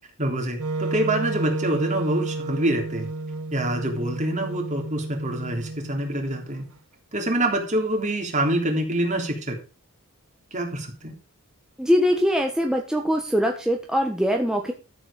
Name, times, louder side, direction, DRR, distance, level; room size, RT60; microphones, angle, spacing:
voice 1, 0.2-3.1 3.5-6.7 7.1-9.6 10.5-11.1, right 1 dB, 35° right, 2 dB, 3.5 m, -26 dB
Wind instrument woodwind instrument, 0.6-6.6, right 2 dB, 75° right, 1.2 m, -31 dB
voice 2, 11.8-14.7, equal, 5° right, 2 dB, 1.3 m, -22 dB
13.0 x 8.2 x 5.1 m, 0.34 s
head